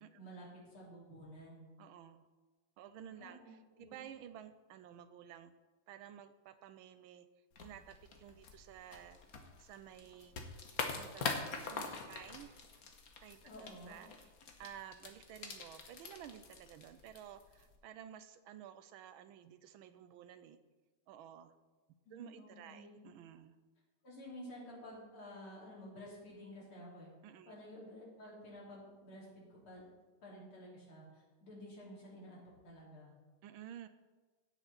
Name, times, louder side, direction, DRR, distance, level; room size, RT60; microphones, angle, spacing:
voice 1, 0.1-1.7 3.1-4.0 13.4-14.0 22.1-23.0 24.0-27.1 27.5-29.8 30.2-33.1, equal, 90° left, -5 dB, 4.0 m, -52 dB
voice 2, 1.8-2.3 2.8-5.5 5.9-7.3 7.6-9.2 9.6-10.4 10.9-12.6 13.2-13.4 13.9-14.3 14.6-20.6 21.1-21.5 22.1-23.6 27.2-27.5 33.4-33.9, right 10 dB, 85° right, 11 dB, 1.4 m, -53 dB
sound 1, 7.5-17.8, left 4 dB, 50° left, 1.4 m, -45 dB
16.5 x 6.2 x 4.1 m, 1.3 s
omnidirectional pair, 2.3 m